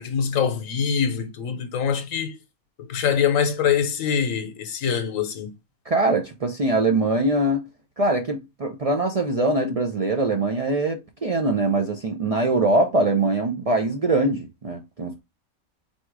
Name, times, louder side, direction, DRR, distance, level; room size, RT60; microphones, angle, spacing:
voice 1, 0.0-2.4 2.8-5.5, left 7 dB, 70° left, 1.1 m, -24 dB
voice 2, 5.9-7.7 8.0-15.2, right 2 dB, 65° right, 0.3 m, -22 dB
4.4 x 2.4 x 4.6 m
omnidirectional pair, 1.4 m